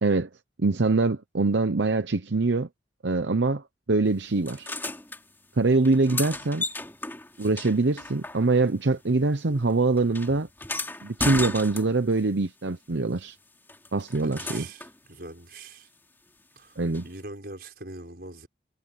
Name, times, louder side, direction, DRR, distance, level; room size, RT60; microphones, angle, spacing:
voice 1, 0.6-2.7 3.0-4.7 5.6-6.6 7.4-10.5 11.0-13.4 13.9-14.6 16.8-17.0, right 3 dB, 75° right, 0.8 m, -24 dB
sound 1, 4.5-5.2 5.8-8.8 9.1-12.2 13.7-15.0 16.9-17.0, left 2 dB, 10° left, 2.8 m, -35 dB
voice 2, 14.1-15.9 16.6-18.5, right 2 dB, 55° right, 6.2 m, -42 dB
head